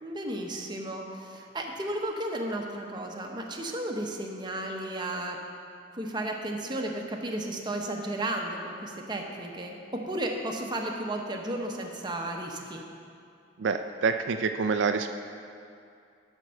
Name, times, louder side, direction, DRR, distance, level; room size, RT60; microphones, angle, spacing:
voice 1, 0.0-5.4 5.9-12.8, right 1 dB, 25° right, 1 dB, 0.9 m, -34 dB
voice 2, 13.6-15.1, right 5 dB, 80° right, 7 dB, 0.4 m, -27 dB
11.5 x 4.5 x 6.3 m, 2.4 s
head